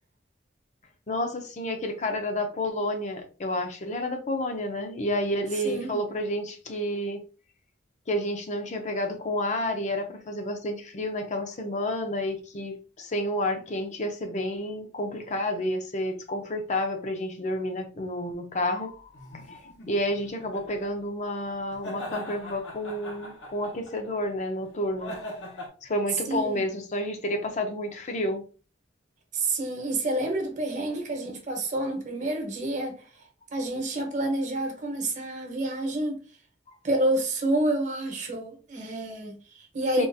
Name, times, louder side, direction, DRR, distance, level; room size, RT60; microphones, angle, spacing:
voice 1, 1.1-7.2 8.1-25.4 25.8-28.4 36.7-36.8 40.0-40.1, left 1 dB, 40° left, 0.6 m, -30 dB
voice 2, 5.6-6.0 26.3-26.6 29.3-33.1 33.5-36.2 36.8-40.1, right 1 dB, 45° right, 1.0 m, -29 dB
sound 1, 19.1-20.9 21.7-24.1 25.0-25.7, equal, 85° left, 0.9 m, -40 dB
3.7 x 2.4 x 2.6 m
head